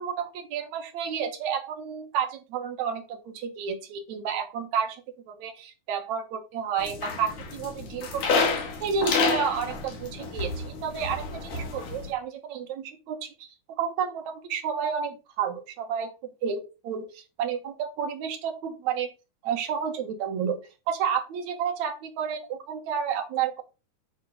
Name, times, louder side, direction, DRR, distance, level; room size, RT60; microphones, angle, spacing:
voice 1, 0.0-5.0 5.3-8.5 8.8-16.1 16.4-19.1 19.4-20.6 20.9-23.6, right 7 dB, 70° right, 4 dB, 2.6 m, -31 dB
sound 1, 6.8-12.1, left 4 dB, 85° left, 3.3 m, -29 dB
9.3 x 3.7 x 5.4 m, 0.30 s
omnidirectional pair, 3.5 m